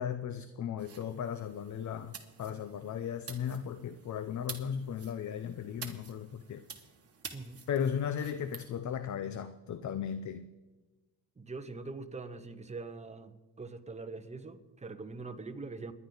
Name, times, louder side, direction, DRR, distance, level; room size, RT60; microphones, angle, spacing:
voice 1, 0.0-6.6 7.7-10.5, left 8 dB, 45° left, 12 dB, 0.7 m, -36 dB
sound 1, 0.8-8.7, right 6 dB, 35° right, 1.7 m, -49 dB
voice 2, 11.4-15.9, right 3 dB, 15° right, 7 dB, 1.0 m, -43 dB
29.5 x 11.0 x 3.9 m, 1.2 s
cardioid pair, 125°, 41 cm